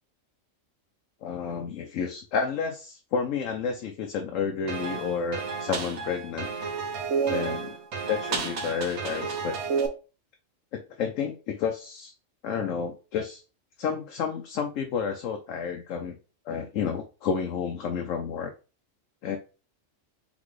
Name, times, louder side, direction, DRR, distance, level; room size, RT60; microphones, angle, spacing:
voice 1, 1.2-6.5 7.3-7.7 8.1-9.5 10.7-12.1 12.4-13.4 13.8-16.2 16.5-18.5 19.2-19.4, left 6 dB, 75° left, 3 dB, 1.0 m, -30 dB
sound 1, 4.7-9.9, right 5 dB, 65° right, 1.1 m, -31 dB
4.0 x 3.5 x 3.1 m, 0.33 s
omnidirectional pair, 1.4 m